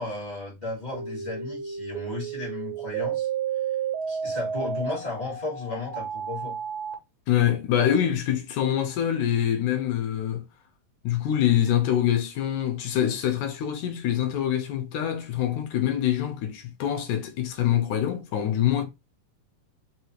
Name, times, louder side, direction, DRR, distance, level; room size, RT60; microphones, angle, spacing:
voice 1, 0.0-3.3 4.1-6.6, left 3 dB, 25° left, 0.9 m, -34 dB
sound 1, 0.9-6.9, right 7 dB, 75° right, 2.7 m, -32 dB
voice 2, 7.3-10.4 11.0-18.9, left 10 dB, 75° left, 2.0 m, -25 dB
5.6 x 2.7 x 3.0 m
omnidirectional pair, 4.0 m